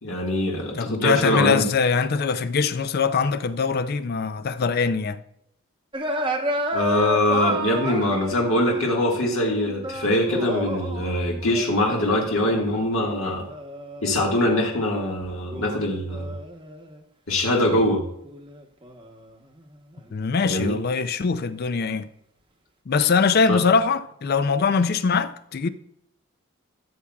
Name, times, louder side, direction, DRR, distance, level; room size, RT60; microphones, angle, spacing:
voice 1, 0.0-1.6 6.7-13.4 14.0-16.3 17.3-18.0 20.4-20.8 23.5-23.6, left 1 dB, 70° left, 1.6 m, -23 dB
voice 2, 0.8-5.2 20.1-22.1 22.9-25.7, left 5 dB, 45° left, 0.4 m, -22 dB
sound 1, 5.9-14.7 15.5-17.0 17.4-20.4, right 1 dB, 20° right, 0.9 m, -32 dB
13.0 x 7.0 x 2.3 m
head